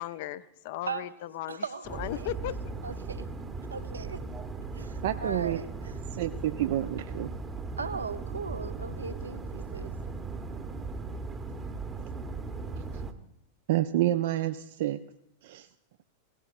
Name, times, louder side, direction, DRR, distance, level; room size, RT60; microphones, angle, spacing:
voice 1, 0.0-1.6 1.9-2.8, left 13 dB, 50° left, 0.5 m, -36 dB
voice 2, 1.5-2.3 2.8-3.3 3.7-4.2 4.7-6.0 7.8-9.9, right 5 dB, 75° right, 0.7 m, -38 dB
sound 1, 1.8-13.1, right 3 dB, 20° right, 0.9 m, -38 dB
voice 3, 5.0-5.6 6.1-7.3 12.0-12.1 12.8-13.0 13.7-15.0 15.4-15.7, right 14 dB, 55° right, 0.4 m, -29 dB
17.5 x 16.0 x 2.5 m
figure-of-eight pair, 90°, 0 cm